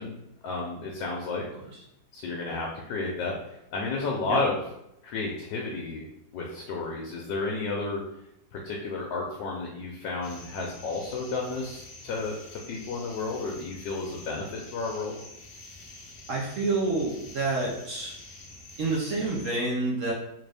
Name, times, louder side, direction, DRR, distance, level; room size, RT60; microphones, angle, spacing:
voice 1, 0.0-1.5 2.1-4.6 5.0-6.0 6.3-8.0 8.5-15.2, left 3 dB, 75° left, -1 dB, 1.2 m, -32 dB
sound 1, 10.2-19.5, left 2 dB, 55° left, 0.9 m, -47 dB
voice 2, 16.3-18.1 18.8-20.1, right 3 dB, 60° right, -3 dB, 0.8 m, -28 dB
3.8 x 2.5 x 3.3 m, 0.82 s
omnidirectional pair, 2.0 m